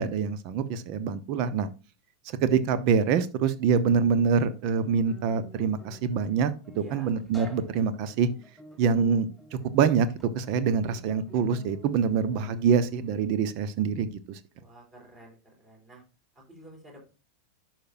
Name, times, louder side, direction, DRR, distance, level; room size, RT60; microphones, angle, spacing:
voice 1, 0.0-1.7 2.4-8.3 8.8-9.3 9.7-10.1 10.3-14.4, right 6 dB, 45° right, 13 dB, 0.8 m, -25 dB
Guitar, 3.9-13.3, left 1 dB, 5° right, 3.8 m, -48 dB
voice 2, 6.7-7.1 14.6-16.0 16.3-17.1, right 1 dB, 20° right, 0 dB, 4.4 m, -50 dB
11.5 x 5.9 x 2.6 m, 0.31 s
figure-of-eight pair, 90°, 0 cm